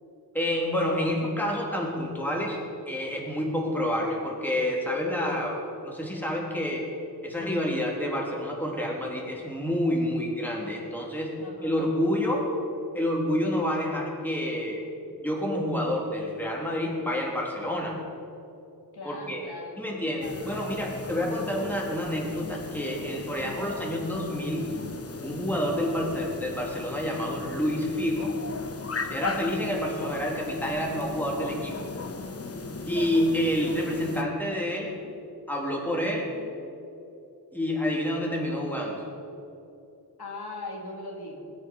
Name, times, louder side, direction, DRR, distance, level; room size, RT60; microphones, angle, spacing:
voice 1, 0.3-2.6 2.9-6.9 7.2-12.5 12.9-14.8 15.1-18.0 19.0-19.4 19.8-24.7 25.2-28.3 29.1-31.8 32.9-35.0 35.5-36.3 37.5-39.0, left 1 dB, 5° left, -2 dB, 3.4 m, -28 dB
voice 2, 11.4-11.9 18.9-20.1 40.2-41.4, left 2 dB, 75° left, 0 dB, 2.4 m, -39 dB
sound 1, 20.2-34.2, left 3 dB, 35° left, 1.1 m, -37 dB
21.5 x 9.3 x 5.5 m, 2.8 s
wide cardioid pair, 80°, 39 cm